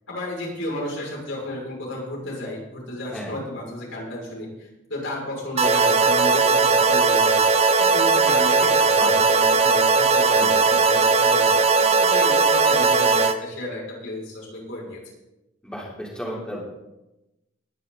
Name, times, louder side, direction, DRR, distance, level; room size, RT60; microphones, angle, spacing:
voice 1, 0.1-7.4 7.8-15.0, left 1 dB, 70° left, -3 dB, 6.0 m, -33 dB
sound 1, 5.6-13.3, right 4 dB, 30° right, 0.8 m, -18 dB
voice 2, 15.6-16.6, equal, 5° left, -5 dB, 3.4 m, -33 dB
20.5 x 10.5 x 4.0 m, 0.97 s
head